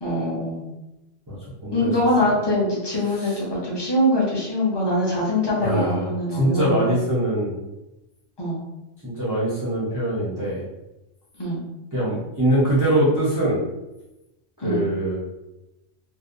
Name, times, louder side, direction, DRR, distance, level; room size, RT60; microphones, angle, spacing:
voice 1, 0.0-0.7 1.7-6.9 8.4-8.6 11.4-11.6 14.6-14.8, left 1 dB, 25° left, -6 dB, 0.6 m, -23 dB
voice 2, 3.0-3.4 5.6-7.5 9.0-10.6 11.9-13.6 14.6-15.2, right 1 dB, 20° right, -9 dB, 0.5 m, -23 dB
2.6 x 2.1 x 2.5 m, 0.97 s
omnidirectional pair, 1.3 m